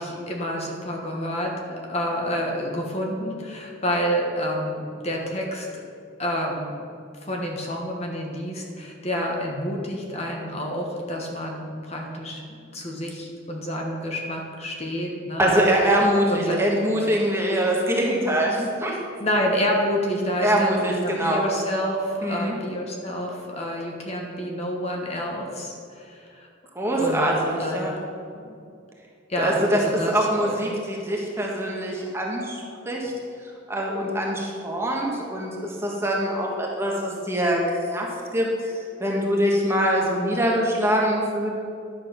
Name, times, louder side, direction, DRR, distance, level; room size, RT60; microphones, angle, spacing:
voice 1, 0.0-1.5 1.8-5.7 6.2-6.8 7.2-15.5 16.3-16.6 19.2-26.5 26.9-27.3 27.6-27.8 28.3-28.5 29.3-30.5, equal, 30° left, 0 dB, 1.4 m, -28 dB
voice 2, 15.4-18.9 20.4-21.4 22.2-22.6 26.7-27.9 29.4-29.8 30.1-33.1 33.7-41.5, equal, 15° right, -2 dB, 1.5 m, -24 dB
11.0 x 7.5 x 5.8 m, 2.4 s
head